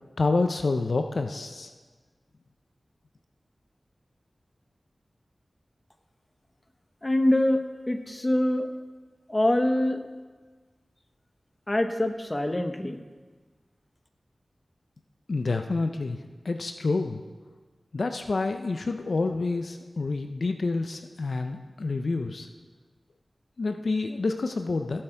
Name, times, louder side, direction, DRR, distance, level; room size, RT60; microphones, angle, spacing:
voice 1, 0.2-1.7 15.3-16.2 16.4-17.2 17.9-22.5 23.6-25.0, left 3 dB, 70° left, 6 dB, 0.6 m, -28 dB
voice 2, 7.0-7.6 7.9-8.7 9.3-10.0 11.7-13.0, left 1 dB, 30° left, 7 dB, 1.0 m, -24 dB
16.0 x 7.8 x 4.6 m, 1.4 s
wide cardioid pair, 55°, 0 cm